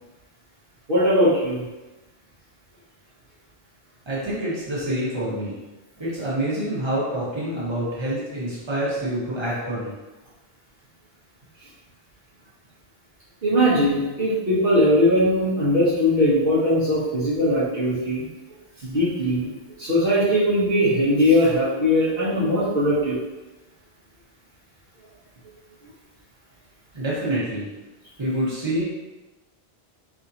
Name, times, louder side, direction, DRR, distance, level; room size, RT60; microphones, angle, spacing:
voice 1, 0.9-1.7 13.4-18.2 18.8-19.5 19.8-23.2, equal, 60° right, -9 dB, 1.3 m, -20 dB
voice 2, 4.1-5.6 6.0-9.9 26.9-27.7 28.2-28.8, right 1 dB, 25° right, -8 dB, 1.3 m, -27 dB
4.2 x 3.5 x 2.8 m, 1.1 s
omnidirectional pair, 1.0 m